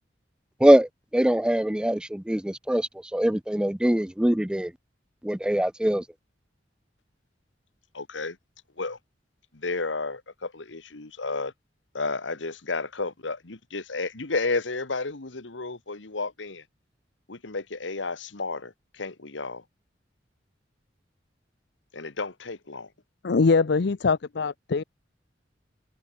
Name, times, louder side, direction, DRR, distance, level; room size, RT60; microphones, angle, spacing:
voice 1, 0.6-4.7 5.2-6.0, right 1 dB, 5° right, 0.4 m, -22 dB
voice 2, 7.9-8.4 8.8-9.0 9.5-11.5 11.9-16.6 17.3-19.6 21.9-22.9, left 3 dB, 85° left, 1.6 m, -32 dB
voice 3, 23.2-24.8, left 4 dB, 65° left, 0.6 m, -22 dB
head